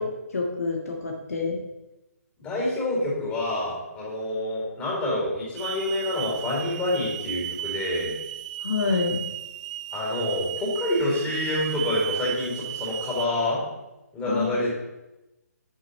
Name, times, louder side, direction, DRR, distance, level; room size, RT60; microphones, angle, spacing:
voice 1, 0.0-1.6 8.6-9.2 14.2-14.5, left 4 dB, 60° left, 0 dB, 1.6 m, -27 dB
voice 2, 2.4-8.2 9.9-13.6 14.1-14.7, left 1 dB, 15° left, -5 dB, 4.3 m, -27 dB
Hiss / Alarm, 5.6-13.3, right 12 dB, 25° right, 0.4 m, -35 dB
10.5 x 8.2 x 4.3 m, 1.0 s
figure-of-eight pair, 140°, 9 cm